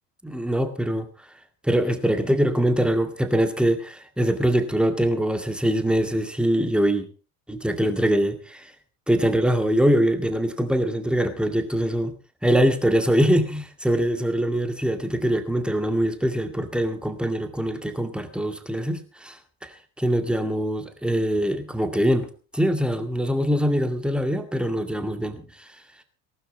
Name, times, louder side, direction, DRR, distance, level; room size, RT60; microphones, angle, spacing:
voice 1, 0.2-1.1 1.6-7.1 7.5-8.7 9.1-12.1 12.4-19.4 19.6-22.3 22.5-25.7, equal, ahead, 8 dB, 2.2 m, -23 dB
19.0 x 12.5 x 4.1 m, 0.35 s
figure-of-eight pair, 70°, 47 cm